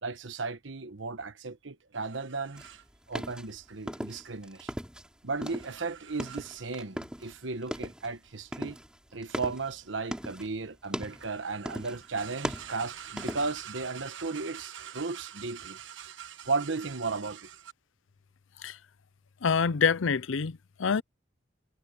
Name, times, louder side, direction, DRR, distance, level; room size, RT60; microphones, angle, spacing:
voice 1, 0.0-4.7 5.2-8.8 9.1-17.7, right 4 dB, 75° right, 1.2 m, -35 dB
sound 1, 2.6-5.1 5.4-7.4 7.6-8.1 8.5-10.5 10.8-11.3 11.7-12.1 12.3-13.6, equal, 5° right, 4.1 m, -38 dB
voice 2, 19.4-21.0, left 6 dB, 80° left, 0.6 m, -26 dB
head